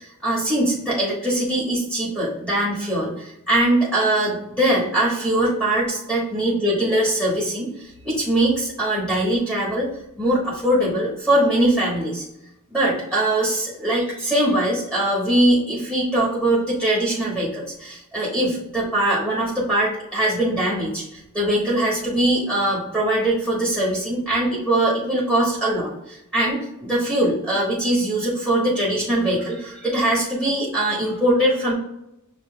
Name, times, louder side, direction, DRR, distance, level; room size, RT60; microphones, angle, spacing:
voice 1, 0.0-9.9 10.2-12.2 12.7-31.7, right 1 dB, 10° right, -7 dB, 1.4 m, -22 dB
7.4 x 2.8 x 2.3 m, 0.86 s
head